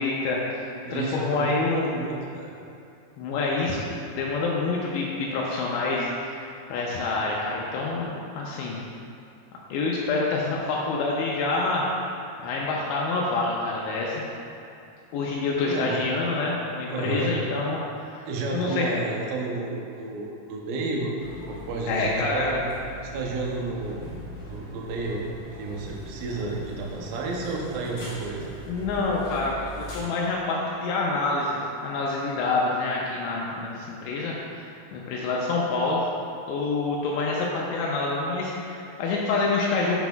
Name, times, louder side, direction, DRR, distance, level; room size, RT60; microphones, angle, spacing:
voice 1, 0.0-1.9 3.2-3.8 4.1-6.4 6.7-8.8 9.7-14.3 15.1-18.2 18.5-18.9 21.9-22.5 28.7-36.0 36.5-40.0, left 3 dB, 85° left, -3 dB, 2.7 m, -27 dB
voice 2, 0.8-2.5 15.7-16.0 16.9-17.3 18.3-21.1 21.5-22.6 23.0-24.1 24.5-25.2 25.6-28.5, right 3 dB, 80° right, -2 dB, 2.2 m, -31 dB
sound 1, 21.2-30.0, equal, 70° left, 1.5 m, -41 dB
8.0 x 6.1 x 2.3 m, 2.6 s
omnidirectional pair, 5.0 m